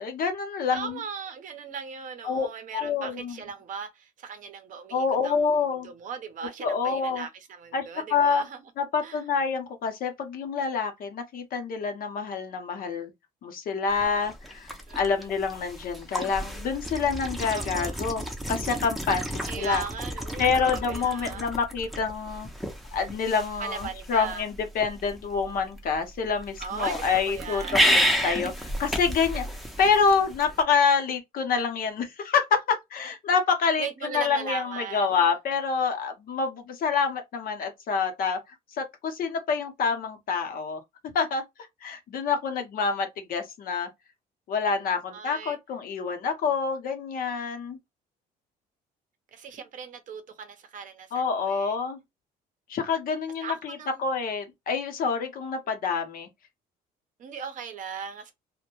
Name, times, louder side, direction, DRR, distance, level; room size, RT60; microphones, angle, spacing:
voice 1, 0.0-1.0 2.2-2.5 2.7-3.4 4.9-5.9 6.6-7.3 7.7-8.4 8.8-13.1 13.4-19.8 20.4-22.5 22.9-27.6 27.9-29.5 29.8-38.4 38.8-40.8 41.1-41.4 41.8-43.9 44.5-47.8 51.1-52.0 52.7-56.3, left 5 dB, 55° left, 0.8 m, -27 dB
voice 2, 0.7-8.6 9.0-9.2 14.9-15.3 17.5-18.0 19.4-21.4 23.6-24.5 26.6-28.3 33.8-35.3 45.1-45.6 49.3-51.7 53.4-54.0 57.2-58.3, right 6 dB, 50° right, 0.6 m, -38 dB
sound 1, 13.9-30.6, equal, ahead, 0.6 m, -32 dB
2.1 x 2.1 x 2.9 m
cardioid pair, 110°, 17 cm